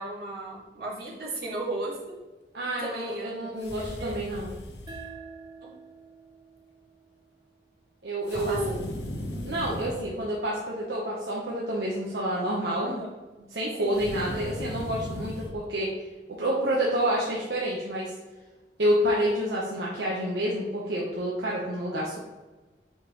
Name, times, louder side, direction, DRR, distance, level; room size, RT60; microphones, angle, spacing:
voice 1, 0.0-1.9 2.8-3.5 3.8-4.2 5.6-5.7 8.3-8.6 12.9-13.1 13.8-14.0, right 2 dB, 60° right, -6 dB, 2.3 m, -35 dB
voice 2, 2.5-4.5 8.0-8.8 9.4-13.0 13.5-15.9 16.4-18.1 18.8-22.2, right 1 dB, 75° right, -5 dB, 1.1 m, -28 dB
sound 1, 3.6-5.1 8.3-10.1 13.9-15.5, left 1 dB, 75° left, 1.1 m, -36 dB
sound 2, 4.9-8.1, right 5 dB, 25° right, 0.9 m, -48 dB
7.5 x 5.4 x 3.1 m, 1.2 s
head